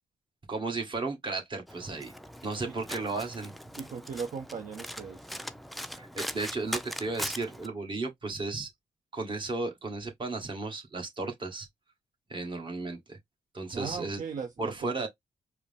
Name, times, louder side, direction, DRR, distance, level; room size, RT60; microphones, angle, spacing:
voice 1, 0.5-2.1 2.4-3.5 5.9-8.7 9.1-11.7 12.3-13.2 13.5-14.2 14.6-15.1, right 3 dB, 35° right, 1.5 m, -34 dB
Domestic sounds home sounds, 1.7-7.7, equal, ahead, 0.4 m, -40 dB
voice 2, 3.8-5.3 13.7-15.1, right 6 dB, 60° right, 0.8 m, -38 dB
4.8 x 2.0 x 3.4 m
cardioid pair, 80°, 15 cm